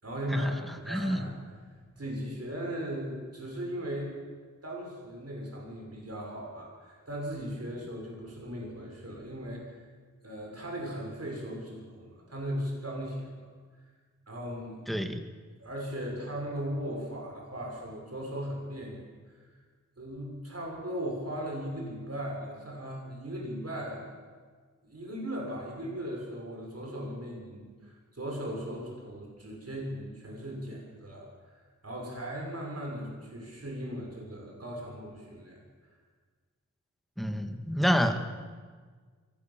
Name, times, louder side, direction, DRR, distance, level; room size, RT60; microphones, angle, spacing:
voice 1, 0.0-1.3 1.9-4.2 4.6-9.8 10.2-13.5 14.3-14.8 15.6-19.4 20.0-24.1 24.8-31.3 31.5-35.6, equal, 50° right, -1 dB, 6.8 m, -37 dB
voice 2, 0.9-1.2 14.9-15.2 37.2-38.2, equal, ahead, 7 dB, 2.0 m, -28 dB
23.5 x 18.5 x 7.6 m, 1.5 s
wide cardioid pair, 80°, 31 cm